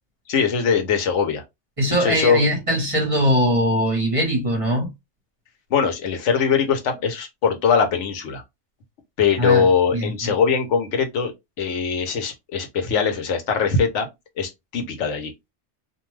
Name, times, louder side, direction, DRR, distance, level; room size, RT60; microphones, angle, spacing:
voice 1, 0.3-1.4 2.0-2.5 5.7-8.4 9.2-11.3 11.6-14.1 14.4-15.3, left 6 dB, 85° left, 1.1 m, -21 dB
voice 2, 1.8-4.9 9.4-9.7 9.9-10.3, equal, 30° right, 1.0 m, -21 dB
2.5 x 2.3 x 3.1 m
omnidirectional pair, 1.2 m